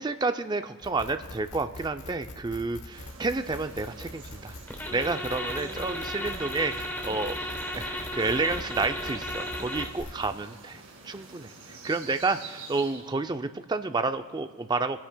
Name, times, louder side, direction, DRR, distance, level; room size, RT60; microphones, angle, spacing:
voice 1, 0.0-4.6 4.9-7.4 7.8-15.0, right 3 dB, 20° right, 9 dB, 0.3 m, -30 dB
sound 1, 0.8-10.3, left 2 dB, 90° left, 1.1 m, -44 dB
sound 2, 2.9-13.4, right 4 dB, 90° right, 2.0 m, -48 dB
sound 3, 4.7-10.0, left 1 dB, 10° left, 0.9 m, -35 dB
27.0 x 10.0 x 2.2 m, 1.5 s
head